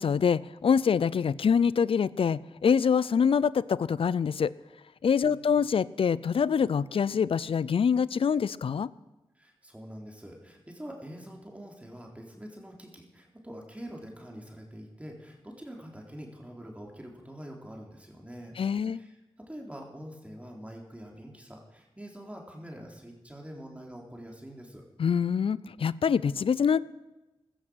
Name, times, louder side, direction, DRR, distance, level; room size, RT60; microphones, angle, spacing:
voice 1, 0.0-4.5 5.0-8.9 18.6-19.0 25.0-26.8, left 6 dB, 70° left, 20 dB, 0.5 m, -25 dB
voice 2, 9.4-18.6 18.8-24.8, equal, 15° right, 0 dB, 3.8 m, -45 dB
15.5 x 14.0 x 6.4 m, 1.0 s
cardioid pair, 50°, 10 cm